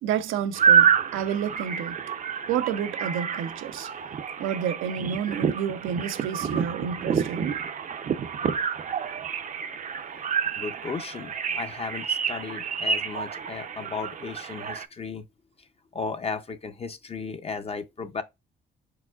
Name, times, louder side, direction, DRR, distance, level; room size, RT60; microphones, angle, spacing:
voice 1, 0.0-2.0 2.5-3.9 4.4-7.6, right 8 dB, 90° right, 0.6 m, -30 dB
sound 1, 0.5-14.9, right 7 dB, 40° right, 0.5 m, -28 dB
voice 2, 10.6-15.2 15.9-18.2, left 5 dB, 30° left, 0.5 m, -35 dB
4.7 x 3.6 x 2.3 m
cardioid pair, 90°, 20 cm